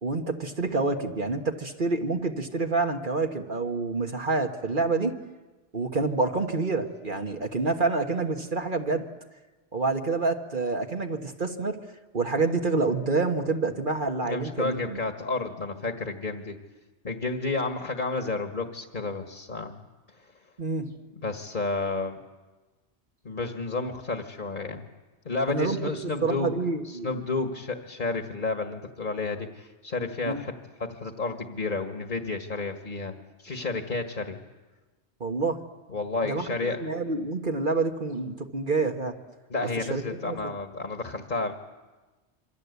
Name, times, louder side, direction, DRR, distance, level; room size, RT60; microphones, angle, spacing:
voice 1, 0.0-5.1 5.7-9.0 9.7-11.8 12.1-15.0 20.6-20.9 25.5-25.9 26.2-27.1 30.3-30.4 35.2-35.6 36.2-39.1 39.8-40.4, right 3 dB, 45° right, 3 dB, 1.6 m, -27 dB
voice 2, 14.2-16.6 17.0-19.8 21.2-22.2 23.2-24.9 25.3-26.5 26.8-30.5 30.8-34.4 35.9-36.8 39.5-41.5, left 3 dB, 45° left, 5 dB, 1.8 m, -31 dB
27.0 x 24.5 x 8.3 m, 1.2 s
omnidirectional pair, 1.2 m